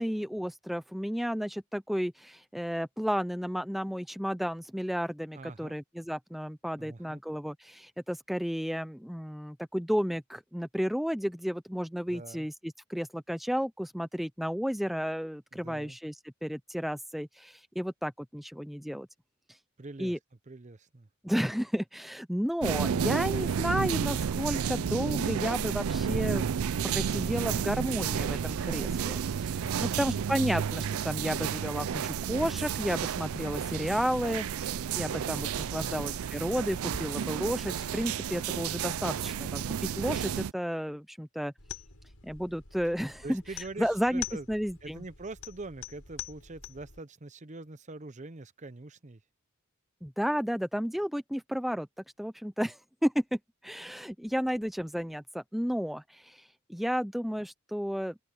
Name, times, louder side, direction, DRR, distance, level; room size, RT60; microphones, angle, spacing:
voice 1, 0.0-19.1 19.5-19.6 20.0-20.2 21.2-26.5 26.8-41.5 42.2-43.4 43.8-45.0 50.0-51.9 52.2-58.2, equal, ahead, 0.4 m, -32 dB
voice 2, 5.3-5.8 6.8-7.2 12.1-12.5 15.5-16.0 19.8-20.1 20.5-21.1 29.6-30.1 35.8-36.2 43.2-44.5 44.8-49.2, right 2 dB, 35° right, 0.8 m, -44 dB
sound 1, 22.6-40.5, right 7 dB, 80° right, 0.4 m, -31 dB
Wind, 32.4-38.9, left 1 dB, 35° left, 3.6 m, -54 dB
sound 2, 41.6-47.0, left 9 dB, 75° left, 5.4 m, -45 dB
open air
head